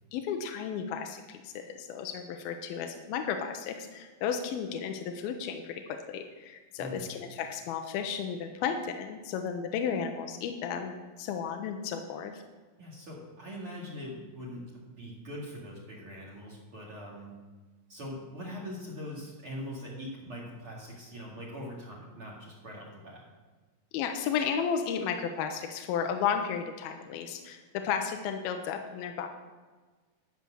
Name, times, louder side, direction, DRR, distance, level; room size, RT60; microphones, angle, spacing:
voice 1, 0.1-12.4 23.9-29.3, left 7 dB, 85° left, 5 dB, 2.7 m, -33 dB
voice 2, 12.8-14.7 15.0-17.4 17.9-23.2, equal, 40° right, -6 dB, 2.7 m, -42 dB
12.5 x 7.7 x 6.3 m, 1.3 s
omnidirectional pair, 4.3 m